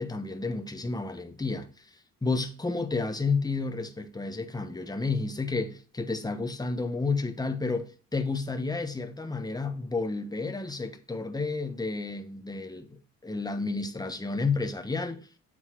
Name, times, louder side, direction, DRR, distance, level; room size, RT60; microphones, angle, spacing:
voice 1, 0.0-1.9 2.2-15.3, left 3 dB, 15° left, 1.1 m, -31 dB
7.9 x 4.1 x 4.6 m
cardioid pair, 90°, 30 cm